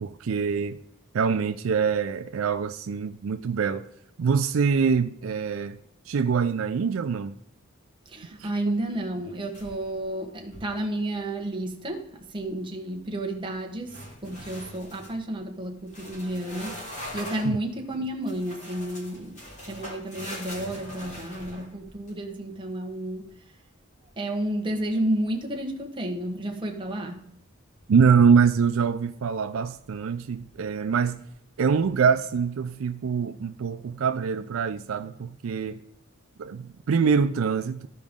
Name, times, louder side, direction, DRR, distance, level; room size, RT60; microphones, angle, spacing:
voice 1, 0.0-0.8 1.1-3.8 4.2-5.8 6.1-7.4 8.4-8.5 17.5-17.6 27.9-31.2 31.6-35.8 36.4-37.9, right 6 dB, 75° right, 0.4 m, -24 dB
voice 2, 8.1-23.4 24.2-27.3, right 1 dB, 25° right, 1.1 m, -31 dB
sound 1, 9.5-10.0 10.4-10.8 13.9-15.2 15.9-17.6 18.3-22.1, left 1 dB, 35° left, 2.7 m, -41 dB
14.0 x 5.0 x 3.6 m
head